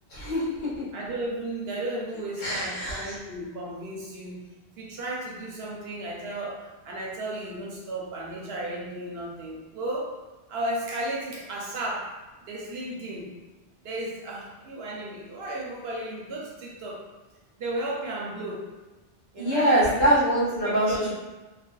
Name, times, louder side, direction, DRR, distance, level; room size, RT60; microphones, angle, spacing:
voice 1, 0.1-0.7 2.4-3.1 19.4-21.1, right 1 dB, 80° left, -8 dB, 1.3 m, -24 dB
voice 2, 0.9-4.4 4.8-10.1 10.5-12.1 12.5-13.3 13.8-17.0 17.6-18.7 19.3-19.9 20.4-21.1, right 1 dB, 70° right, -3 dB, 0.9 m, -34 dB
3.2 x 2.1 x 2.3 m, 1.1 s
omnidirectional pair, 1.1 m